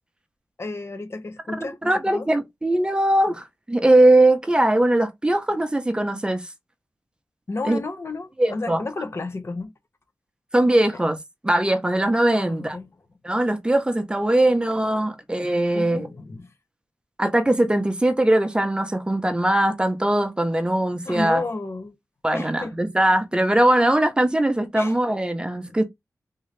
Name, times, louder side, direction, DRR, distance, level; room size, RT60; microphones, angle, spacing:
voice 1, 0.6-2.3 7.5-9.7 12.4-12.9 15.7-16.5 21.1-21.9 22.3-22.7 24.7-25.0 25.6-25.8, left 3 dB, 45° left, 0.7 m, -32 dB
voice 2, 1.6-6.5 7.6-7.8 8.4-8.8 10.5-11.2 11.4-12.8 13.2-16.1 17.2-21.4 22.2-25.8, right 1 dB, 15° right, 0.6 m, -20 dB
3.6 x 2.8 x 3.2 m
wide cardioid pair, 120°, 6 cm